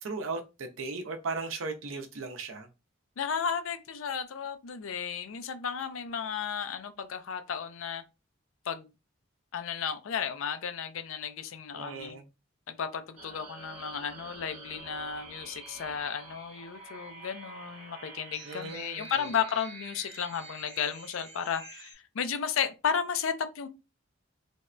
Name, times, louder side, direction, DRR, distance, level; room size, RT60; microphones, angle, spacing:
voice 1, 0.0-2.7 11.7-12.3 18.4-19.3, right 3 dB, 80° right, 0.6 m, -37 dB
voice 2, 3.2-8.0 8.7-8.9 9.5-12.2 12.7-23.7, left 7 dB, 85° left, 0.5 m, -34 dB
sound 1, 13.2-21.9, right 2 dB, 30° right, 0.9 m, -47 dB
3.3 x 2.1 x 2.4 m
head